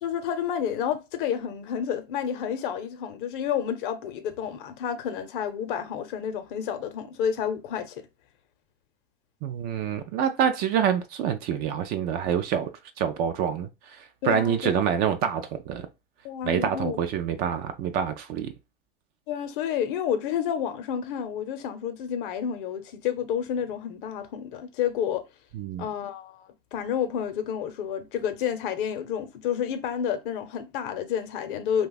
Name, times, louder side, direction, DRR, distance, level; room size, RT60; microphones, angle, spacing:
voice 1, 0.0-8.0 14.2-14.8 16.2-17.0 19.3-25.2 25.8-31.9, left 8 dB, 55° left, 0.8 m, -30 dB
voice 2, 9.4-13.7 14.2-15.9 16.4-18.5 25.5-25.8, right 8 dB, 35° right, 0.4 m, -26 dB
2.5 x 2.3 x 3.9 m
hypercardioid pair, 115°, 30 cm